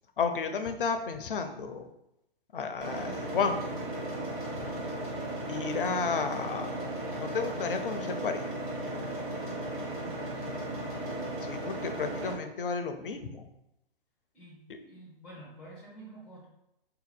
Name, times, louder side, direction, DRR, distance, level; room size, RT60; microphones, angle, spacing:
voice 1, 0.2-1.9 2.5-3.7 5.5-6.7 7.2-8.5 11.4-13.5, left 5 dB, 60° left, 8 dB, 0.6 m, -32 dB
sound 1, 2.8-12.3, right 1 dB, 20° right, 1.2 m, -36 dB
voice 2, 4.1-4.5 9.8-11.0 14.3-16.5, right 1 dB, ahead, -4 dB, 0.7 m, -50 dB
4.0 x 2.8 x 4.0 m, 0.84 s
figure-of-eight pair, 130°, 30 cm